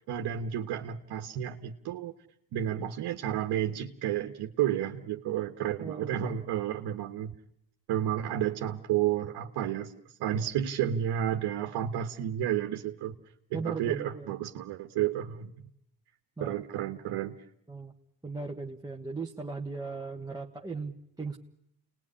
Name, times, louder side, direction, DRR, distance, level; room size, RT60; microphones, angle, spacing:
voice 1, 0.1-2.1 2.5-7.3 7.9-9.9 10.2-13.1 13.5-15.5 16.4-17.3, right 10 dB, 70° right, 4 dB, 1.4 m, -31 dB
voice 2, 5.8-6.5 13.5-14.4 16.4-16.6 17.7-17.9 18.2-21.4, right 4 dB, 10° right, -1 dB, 1.3 m, -38 dB
28.5 x 20.0 x 10.0 m, 0.79 s
cardioid pair, 110°, 39 cm